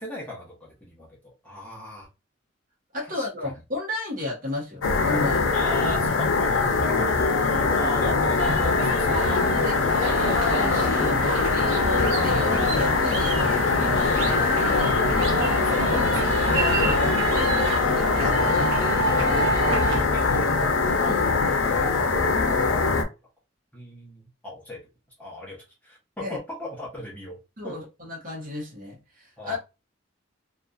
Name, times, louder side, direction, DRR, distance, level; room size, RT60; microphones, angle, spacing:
voice 1, 0.0-2.1 3.0-3.5 5.5-10.4 15.4-16.3 17.0-17.1 20.1-21.1 21.6-21.9 23.7-24.8 25.2-27.4 27.6-27.8 29.4-29.6, left 1 dB, 10° left, 0.8 m, -38 dB
voice 2, 2.9-5.5 9.2-9.3 9.6-14.8 15.1-15.4 16.5-19.2 19.6-20.2 21.0-21.2 26.2-26.4 27.6-29.6, left 2 dB, 45° right, 1.0 m, -33 dB
sound 1, 4.8-23.0, left 4 dB, 80° left, 0.5 m, -22 dB
sound 2, 8.4-20.1, right 3 dB, 85° right, 0.6 m, -30 dB
sound 3, 10.0-17.0, right 3 dB, 65° right, 1.1 m, -34 dB
2.7 x 2.4 x 2.3 m
head